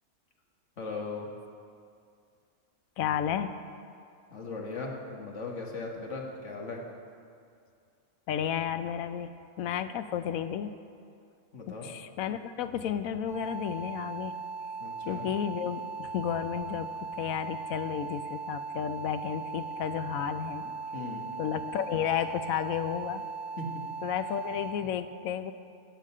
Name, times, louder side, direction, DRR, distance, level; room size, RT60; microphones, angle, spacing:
voice 1, 0.8-1.3 4.3-6.8 11.5-11.9 14.8-15.3 20.9-21.3 23.6-23.8, left 3 dB, 60° left, 0 dB, 1.8 m, -38 dB
voice 2, 3.0-3.5 8.3-9.3 9.6-10.7 11.6-14.3 15.1-16.9 17.2-20.6 21.4-23.2 24.0-25.5, left 9 dB, 80° left, 11 dB, 1.0 m, -32 dB
sound 1, 13.3-24.7, right 4 dB, 40° left, 3.7 m, -39 dB
15.0 x 5.2 x 8.5 m, 2.4 s
omnidirectional pair, 1.5 m